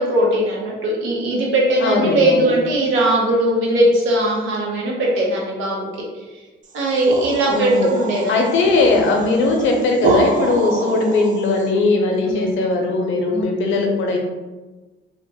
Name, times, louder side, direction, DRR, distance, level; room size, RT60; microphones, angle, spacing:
voice 1, 0.0-5.9 6.7-8.5 12.2-12.5 13.3-13.5, right 1 dB, 80° right, -3 dB, 0.8 m, -19 dB
voice 2, 1.8-2.5 7.5-7.9 8.3-14.2, left 3 dB, 80° left, 1 dB, 0.6 m, -19 dB
sound 1, 6.7-11.7, right 2 dB, 40° right, 0.4 m, -26 dB
2.9 x 2.1 x 2.8 m, 1.2 s
cardioid pair, 90°, 20 cm